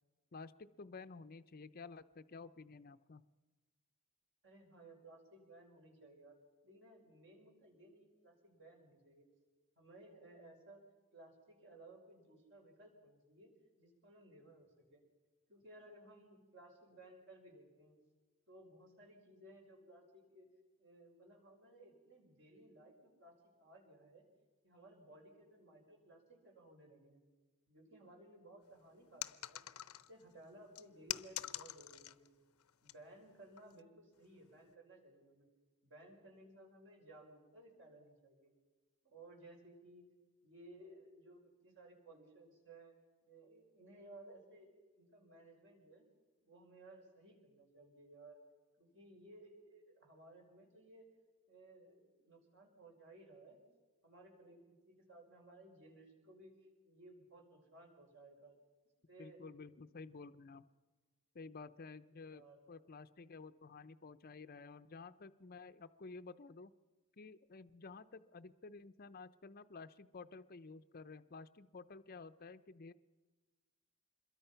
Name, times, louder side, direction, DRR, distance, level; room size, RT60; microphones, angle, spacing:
voice 1, 0.3-3.2 59.2-60.7 61.3-66.7 67.2-72.9, left 4 dB, 45° left, 11 dB, 0.6 m, -52 dB
voice 2, 4.4-6.4 6.6-9.3 9.8-10.8 11.1-13.5 13.8-15.0 15.5-18.0 18.5-20.5 20.8-24.2 24.6-27.3 27.7-29.6 30.1-32.3 32.8-35.5 35.8-38.5 39.0-40.0 40.4-42.9 43.2-46.0 46.4-48.4 48.8-51.1 51.5-53.6 54.0-56.5 56.8-58.5 59.1-59.7 62.3-62.6, right 1 dB, 60° right, 1 dB, 5.6 m, -59 dB
sound 1, 29.2-30.2 30.7-32.3 32.6-32.9 33.6-33.8, left 13 dB, 85° left, 0.7 m, -45 dB
26.5 x 22.0 x 5.7 m, 1.3 s
head